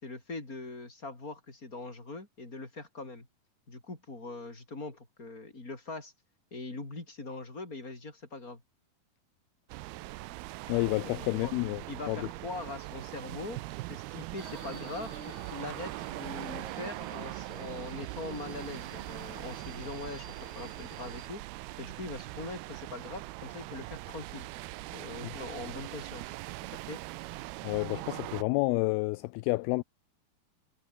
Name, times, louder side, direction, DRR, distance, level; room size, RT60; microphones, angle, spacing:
voice 1, 0.0-3.3 3.7-6.1 6.5-8.6 11.4-11.5 11.9-13.6 13.9-21.4 21.8-24.5 24.9-26.4 26.8-27.0, left 3 dB, 20° left, 5.7 m, -42 dB
sound 1, 9.7-28.4, right 19 dB, 80° right, 2.6 m, -41 dB
voice 2, 10.7-11.8 12.1-12.3 25.2-25.3 27.6-29.8, left 23 dB, 85° left, 2.4 m, -29 dB
Subway metro underground, 14.4-21.3, right 4 dB, 45° right, 6.8 m, -49 dB
omnidirectional pair, 4.5 m